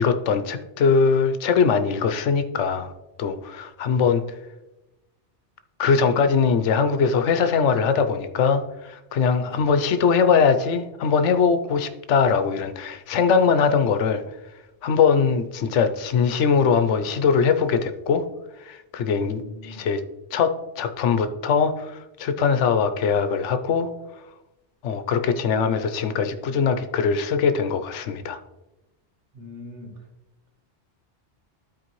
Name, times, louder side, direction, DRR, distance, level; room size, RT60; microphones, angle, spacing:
voice 1, 0.0-2.9 3.2-4.2 5.8-14.2 14.8-18.2 18.6-20.0 20.3-23.9 24.8-28.4, left 6 dB, 90° left, 9 dB, 1.0 m, -21 dB
voice 2, 19.1-19.8 29.3-29.9, left 1 dB, 85° right, 2 dB, 1.7 m, -41 dB
12.5 x 4.4 x 3.1 m, 1.0 s
omnidirectional pair, 1.2 m